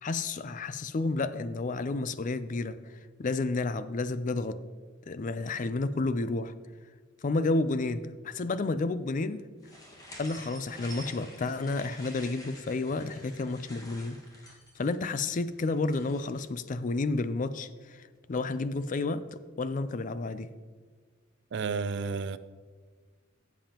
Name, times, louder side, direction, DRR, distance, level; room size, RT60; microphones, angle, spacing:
voice 1, 0.0-2.8 3.2-4.6 5.1-6.5 7.2-9.4 10.2-14.2 14.8-20.5, left 3 dB, 40° left, 13 dB, 0.4 m, -31 dB
sound 1, 9.6-16.5, equal, 20° left, 1.6 m, -49 dB
voice 2, 21.5-22.4, right 5 dB, 55° right, 13 dB, 0.4 m, -31 dB
14.0 x 7.3 x 2.9 m, 1.5 s
head